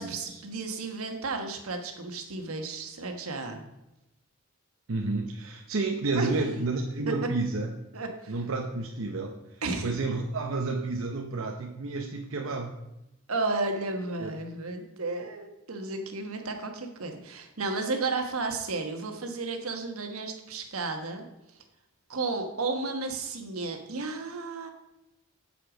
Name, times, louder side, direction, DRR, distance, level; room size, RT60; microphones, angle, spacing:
voice 1, 0.0-3.6 6.1-6.3 7.1-7.3 7.9-8.3 9.6-9.9 13.3-21.2 22.1-24.7, right 3 dB, 90° right, 4 dB, 1.3 m, -33 dB
voice 2, 4.9-7.7 8.3-12.8 14.2-14.3, right 3 dB, 65° right, 2 dB, 0.8 m, -31 dB
7.9 x 6.8 x 5.0 m, 0.92 s
head